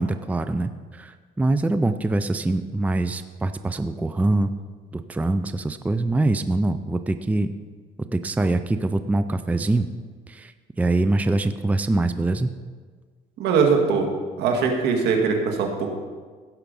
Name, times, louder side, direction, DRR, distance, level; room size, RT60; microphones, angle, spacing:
voice 1, 0.0-4.5 4.9-7.5 8.1-9.9 10.3-10.5 10.8-12.5, right 2 dB, 10° right, 10 dB, 0.4 m, -24 dB
voice 2, 13.4-14.1 14.4-15.9, right 5 dB, 80° right, 2 dB, 1.9 m, -21 dB
16.0 x 5.9 x 5.3 m, 1.5 s
cardioid pair, 110°, 17 cm